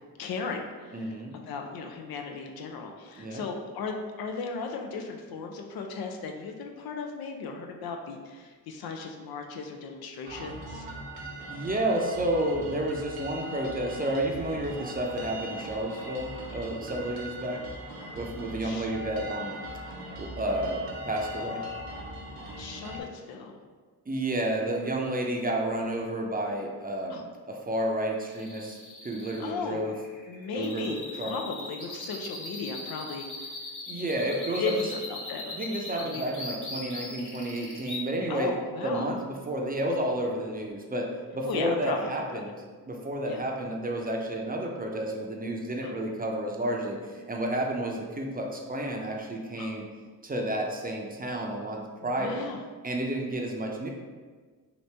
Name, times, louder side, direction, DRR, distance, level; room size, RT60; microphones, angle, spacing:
voice 1, 0.2-10.9 18.6-18.9 22.6-23.6 27.1-27.2 29.4-29.9 30.3-33.6 34.6-35.6 36.0-36.2 38.3-39.1 41.5-42.4 43.2-43.4 45.8-45.9 49.6-49.7 52.0-52.6, left 4 dB, 75° left, 3 dB, 0.5 m, -36 dB
voice 2, 0.9-1.4 3.2-3.4 11.5-17.6 18.1-19.6 20.2-21.6 24.1-28.8 29.0-29.9 30.5-31.3 33.9-34.7 35.5-38.5 38.8-42.5 42.9-49.9 50.2-52.4 52.8-53.9, right 1 dB, 25° right, 0 dB, 0.6 m, -31 dB
sound 1, 10.2-23.0, equal, 75° right, 0.7 m, -40 dB
sound 2, 28.2-38.0, left 2 dB, 50° left, 1.0 m, -40 dB
2.9 x 2.7 x 3.3 m, 1.5 s
cardioid pair, 60°, 37 cm